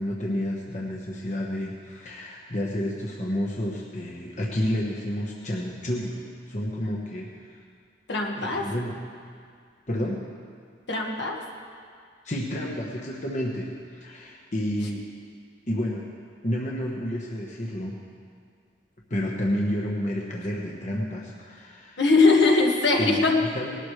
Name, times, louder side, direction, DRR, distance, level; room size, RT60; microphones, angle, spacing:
voice 1, 0.0-7.6 8.4-9.0 9.9-10.2 12.2-15.1 15.7-16.0 16.4-18.0 19.1-22.0 23.0-23.8, equal, 40° left, -2 dB, 1.1 m, -30 dB
voice 2, 8.1-8.7 10.9-11.4 22.0-23.4, left 3 dB, 65° left, 0 dB, 1.6 m, -21 dB
19.5 x 12.5 x 3.3 m, 2.1 s
head